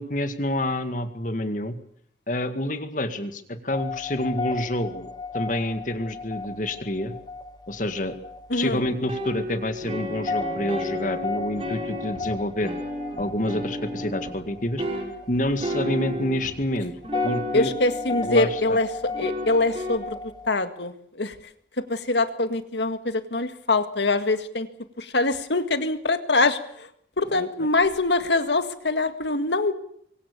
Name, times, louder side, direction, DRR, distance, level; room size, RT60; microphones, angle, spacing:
voice 1, 0.0-1.8 2.3-5.1 5.3-7.2 7.7-8.2 8.5-12.7 13.2-14.8 15.3-16.9 17.2-17.7 18.1-18.8 27.3-27.5, left 1 dB, 45° left, 9 dB, 2.0 m, -28 dB
sound 1, 3.7-20.5, left 3 dB, 25° left, 1.0 m, -35 dB
voice 2, 8.5-8.8 17.5-18.9 19.2-20.2 20.5-21.4 21.9-24.7 25.0-26.9 27.2-29.7, left 2 dB, 75° left, 10 dB, 1.9 m, -24 dB
sound 2, 8.7-14.4 14.8-16.7 17.0-18.8 19.1-20.0, equal, 30° right, 6.2 m, -33 dB
24.0 x 23.5 x 6.9 m, 0.69 s
head